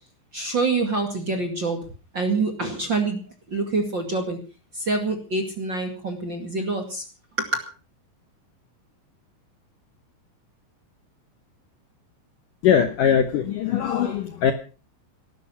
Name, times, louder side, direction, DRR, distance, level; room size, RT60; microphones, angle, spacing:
voice 1, 0.3-1.8 2.1-3.2 3.5-4.4 4.7-7.0 7.4-7.6, right 3 dB, 35° right, 4 dB, 2.0 m, -26 dB
voice 2, 12.6-14.5, left 8 dB, 70° left, 9 dB, 2.0 m, -21 dB
18.5 x 12.5 x 5.7 m, 0.36 s
omnidirectional pair, 5.1 m